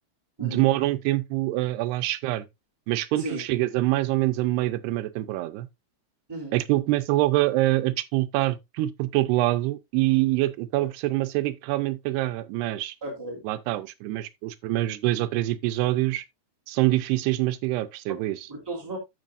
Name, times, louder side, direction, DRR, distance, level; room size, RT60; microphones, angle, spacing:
voice 1, 0.4-2.5 2.9-5.7 6.5-13.0 13.4-16.2 16.7-18.5, right 17 dB, 85° right, 2.8 m, -25 dB
voice 2, 13.0-13.4 18.1-18.2 18.5-19.0, right 2 dB, 5° right, 2.6 m, -35 dB
13.0 x 5.4 x 2.5 m
omnidirectional pair, 4.6 m